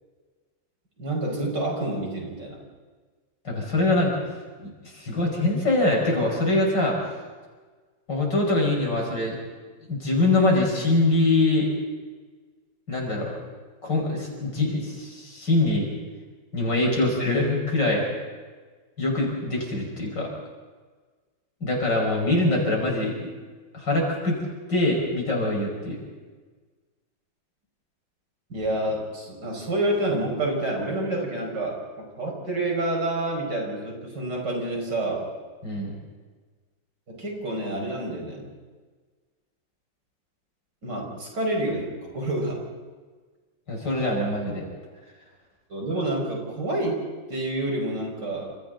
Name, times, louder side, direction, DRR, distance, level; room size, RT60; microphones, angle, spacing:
voice 1, 1.0-2.6 28.5-35.3 37.1-38.5 40.8-42.6 45.7-47.0 47.3-48.5, right 1 dB, 60° right, -1 dB, 6.2 m, -28 dB
voice 2, 3.4-4.2 4.6-6.9 8.1-9.4 9.9-11.7 12.9-13.3 13.8-15.9 16.5-18.0 19.0-20.3 21.6-23.3 23.7-24.4 24.7-26.0 35.6-36.0 43.7-44.6, left 2 dB, 65° left, -1 dB, 6.2 m, -23 dB
29.0 x 27.5 x 4.0 m, 1.4 s
omnidirectional pair, 2.1 m